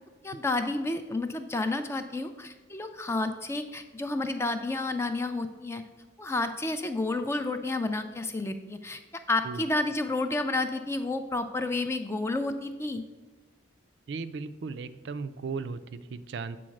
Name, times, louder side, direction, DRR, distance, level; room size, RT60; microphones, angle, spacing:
voice 1, 0.2-5.8 6.2-9.0 9.3-13.0, left 2 dB, 15° left, 8 dB, 0.3 m, -30 dB
voice 2, 14.1-16.6, right 4 dB, 60° right, 12 dB, 0.4 m, -36 dB
7.7 x 3.9 x 6.3 m, 1.2 s
head